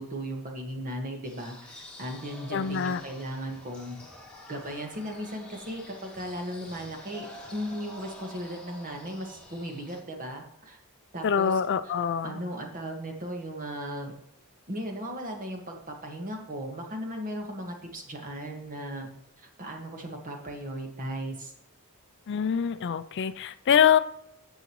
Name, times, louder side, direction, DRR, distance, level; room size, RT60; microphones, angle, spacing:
voice 1, 0.0-4.0 4.5-10.8 11.1-11.6 12.2-14.1 14.7-19.1 19.4-21.5, equal, 40° right, 2 dB, 1.6 m, -37 dB
sound 1, 1.2-10.0, left 1 dB, 5° left, 2.1 m, -48 dB
voice 2, 2.5-3.0 11.2-12.4 22.3-24.0, left 8 dB, 55° left, 13 dB, 0.4 m, -24 dB
10.0 x 7.1 x 3.1 m, 0.78 s
head